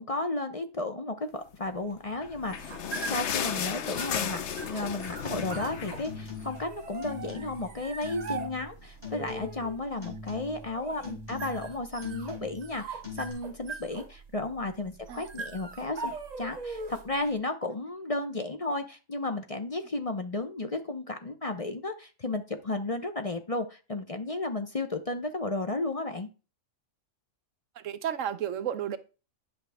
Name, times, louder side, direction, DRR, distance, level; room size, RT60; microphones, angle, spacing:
voice 1, 0.0-2.7 3.0-4.4 4.7-26.3, left 2 dB, 35° left, 0.6 m, -33 dB
sound 1, 2.1-6.8 7.2-7.3 7.6-7.7 8.4-8.5, left 8 dB, 60° left, 1.0 m, -34 dB
sound 2, 2.3-17.2, right 4 dB, 45° right, 0.6 m, -42 dB
sound 3, 5.3-5.7 6.0-6.7 7.0-7.7 8.0-8.7 9.0-9.7 10.0-10.7 11.0-11.7 12.0-12.7 13.0-13.3, left 4 dB, 15° left, 2.7 m, -42 dB
voice 2, 27.8-29.0, right 9 dB, 65° right, 1.0 m, -33 dB
10.5 x 5.7 x 3.4 m
omnidirectional pair, 1.5 m